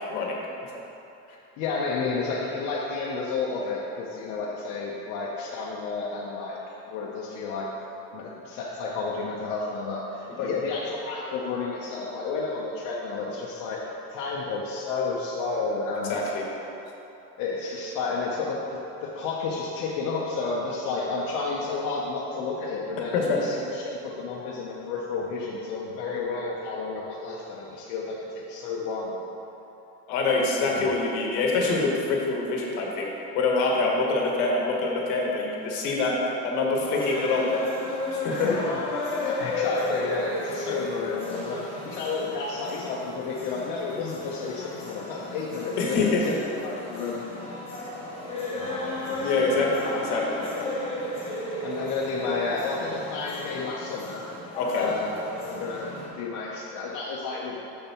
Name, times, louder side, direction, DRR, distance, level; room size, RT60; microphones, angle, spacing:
voice 1, 1.6-6.6 6.9-7.7 8.1-13.8 14.1-16.2 17.4-29.2 30.7-30.9 38.3-38.7 39.2-47.2 48.5-50.4 51.6-54.2 54.7-55.2 55.4-55.9 56.2-57.6, left 4 dB, 65° left, -4 dB, 0.8 m, -31 dB
voice 2, 16.1-16.5 23.1-23.4 30.1-33.1 33.3-36.2 36.4-37.5 38.1-38.5 45.8-46.2 49.2-50.7 54.5-54.9, left 3 dB, 80° left, -1 dB, 1.2 m, -25 dB
sound 1, 36.8-56.1, left 2 dB, 20° left, 0.9 m, -34 dB
6.8 x 6.7 x 3.0 m, 3.0 s
cardioid pair, 165°, 33 cm